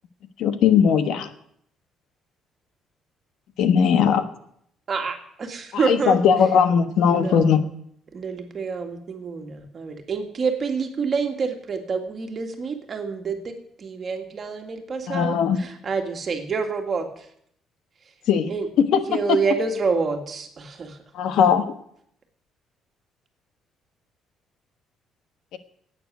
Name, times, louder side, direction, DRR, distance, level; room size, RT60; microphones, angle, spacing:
voice 1, 0.4-1.3 3.6-4.3 5.7-7.6 15.1-15.6 18.3-18.5 18.8-19.0 21.1-21.7 25.5-25.6, left 7 dB, 70° left, 10 dB, 1.2 m, -19 dB
voice 2, 4.9-6.2 7.1-7.6 8.1-13.5 13.8-17.1 18.5-18.7 19.1-21.0, right 5 dB, 35° right, 4 dB, 2.0 m, -27 dB
11.5 x 9.0 x 9.4 m, 0.69 s
cardioid pair, 150°, 0 cm